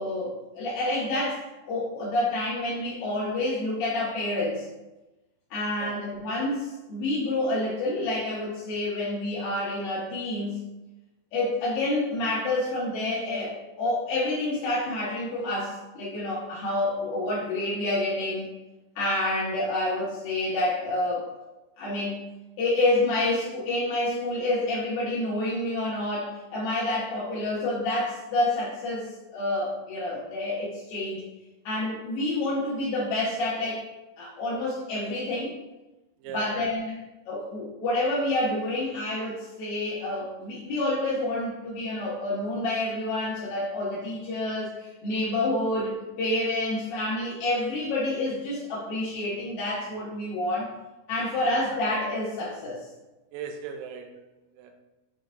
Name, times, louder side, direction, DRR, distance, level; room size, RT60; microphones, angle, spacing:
voice 1, 0.0-4.7 5.5-10.6 11.3-18.5 19.0-21.3 21.8-22.3 22.6-31.2 31.7-33.8 34.2-35.5 36.3-36.9 37.3-50.7 51.1-52.8, left 1 dB, 65° left, -8 dB, 1.8 m, -28 dB
voice 2, 36.2-36.7 53.3-54.2 54.6-54.7, right 6 dB, 80° right, 4 dB, 2.2 m, -38 dB
6.3 x 2.9 x 2.5 m, 1.0 s
omnidirectional pair, 4.2 m